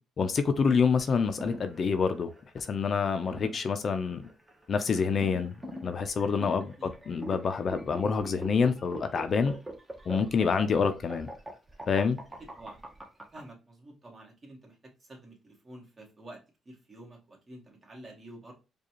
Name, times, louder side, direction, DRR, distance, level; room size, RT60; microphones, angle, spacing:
voice 1, 0.2-2.3 2.5-4.2 4.7-5.5 5.8-6.7 7.1-9.5 10.1-11.3 11.9-12.2, left 5 dB, 50° left, 0.5 m, -27 dB
sound 1, 1.0-13.4, right 1 dB, 15° right, 0.9 m, -42 dB
voice 2, 13.3-16.4 16.7-18.5, right 1 dB, 35° right, 1.7 m, -49 dB
4.8 x 2.3 x 3.0 m
cardioid pair, 90°, 0 cm